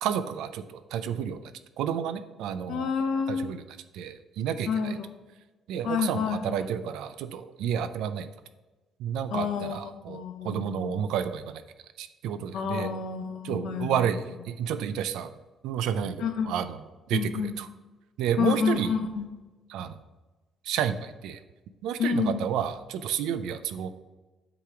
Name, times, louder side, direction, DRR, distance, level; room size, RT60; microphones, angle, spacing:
voice 1, 0.0-1.4 1.8-2.9 3.3-3.6 3.9-4.9 5.7-8.3 9.0-11.6 12.0-12.9 13.4-15.3 15.6-16.8 17.1-17.7 18.2-18.9 19.7-20.0 20.7-21.4 21.8-23.9, right 8 dB, 80° right, 11 dB, 0.4 m, -30 dB
voice 2, 2.7-3.5 4.7-5.1 5.8-6.6 9.3-11.0 12.5-14.0 16.2-16.5 17.1-17.6 18.4-19.3 22.0-22.5, left 6 dB, 65° left, 5 dB, 0.8 m, -29 dB
8.2 x 3.0 x 4.8 m, 1.2 s
cardioid pair, 175°, 0 cm